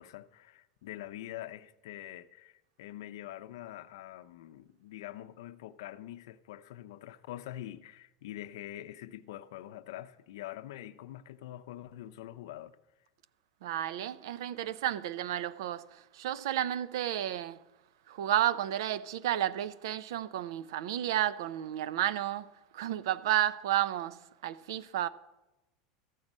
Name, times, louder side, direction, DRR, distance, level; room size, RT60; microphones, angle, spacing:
voice 1, 0.0-12.8, left 13 dB, 85° left, 0.5 m, -45 dB
voice 2, 13.6-17.6 18.1-25.1, right 12 dB, 85° right, 0.5 m, -32 dB
14.0 x 7.4 x 5.3 m
supercardioid pair, 175°, 2 cm